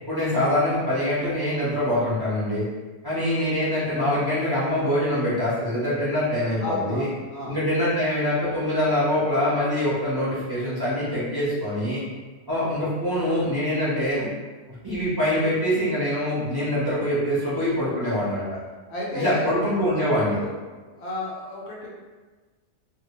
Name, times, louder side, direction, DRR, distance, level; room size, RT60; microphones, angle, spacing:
voice 1, 0.0-2.6 3.0-7.1 7.5-12.0 12.5-14.3 14.8-18.6 19.1-20.4, left 1 dB, 25° right, -11 dB, 0.6 m, -24 dB
voice 2, 6.6-7.6 18.9-19.5 20.0-20.6 21.0-21.9, left 2 dB, 70° left, -4 dB, 0.8 m, -33 dB
2.2 x 2.1 x 3.0 m, 1.3 s
omnidirectional pair, 1.2 m